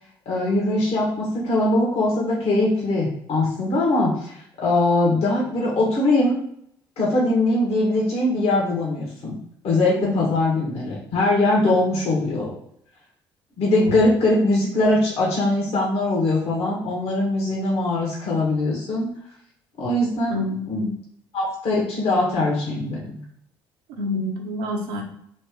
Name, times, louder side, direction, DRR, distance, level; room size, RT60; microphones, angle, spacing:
voice 1, 0.2-6.4 7.0-9.4 9.6-12.5 13.6-19.1 19.8-20.4 20.7-20.8 21.3-23.2, left 2 dB, 60° left, -4 dB, 1.5 m, -21 dB
voice 2, 10.0-10.3 11.6-11.7 20.3-20.9 24.0-25.0, left 1 dB, 80° right, 0 dB, 0.9 m, -28 dB
4.1 x 2.9 x 3.6 m, 0.69 s
hypercardioid pair, 50°, 12 cm